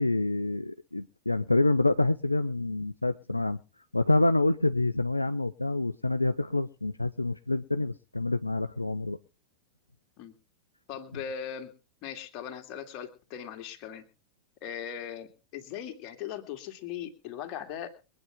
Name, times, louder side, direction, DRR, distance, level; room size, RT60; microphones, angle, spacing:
voice 1, 0.0-3.6 3.9-9.2, left 2 dB, 85° left, 11 dB, 0.6 m, -27 dB
voice 2, 10.9-11.7 12.0-14.0 14.6-18.2, left 9 dB, 40° left, 7 dB, 2.5 m, -39 dB
23.5 x 9.1 x 3.7 m, 0.34 s
figure-of-eight pair, 90°, 0 cm